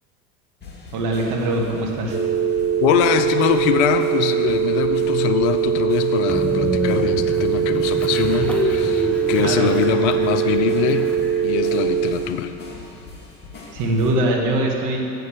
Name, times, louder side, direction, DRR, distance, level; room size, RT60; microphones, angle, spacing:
sound 1, 0.6-14.1, left 3 dB, 20° left, 2.3 m, -41 dB
voice 1, 0.9-2.2 9.4-9.7 13.7-15.0, right 1 dB, 45° right, -1 dB, 1.9 m, -22 dB
sound 2, 2.1-12.1, right 8 dB, 25° right, 1.4 m, -21 dB
voice 2, 2.8-11.1 11.4-12.5, left 10 dB, 50° left, 9 dB, 0.7 m, -22 dB
Train, 6.3-11.6, left 2 dB, 5° left, 0.4 m, -28 dB
7.5 x 6.7 x 7.3 m, 2.7 s
hypercardioid pair, 90°, 45 cm